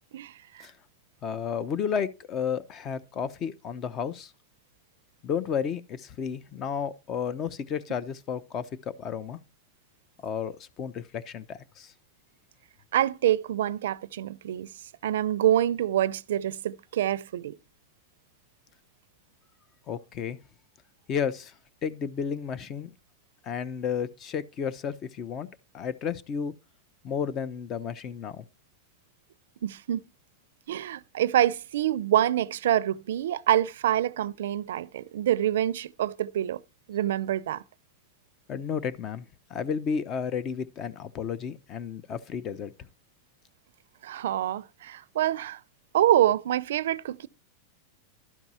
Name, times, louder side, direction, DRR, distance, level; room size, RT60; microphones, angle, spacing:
voice 1, 0.1-0.7 12.9-14.7 15.0-17.6 29.6-30.0 30.7-36.6 36.9-37.6 44.0-45.6 45.9-47.3, right 12 dB, 80° right, 0.5 m, -26 dB
voice 2, 1.2-4.3 5.2-9.4 10.2-11.9 19.9-20.4 21.1-21.5 21.8-22.9 23.4-25.5 25.7-26.5 27.0-28.4 38.5-42.9, left 7 dB, 30° left, 0.8 m, -32 dB
12.0 x 4.5 x 5.6 m
supercardioid pair, 145°, 0 cm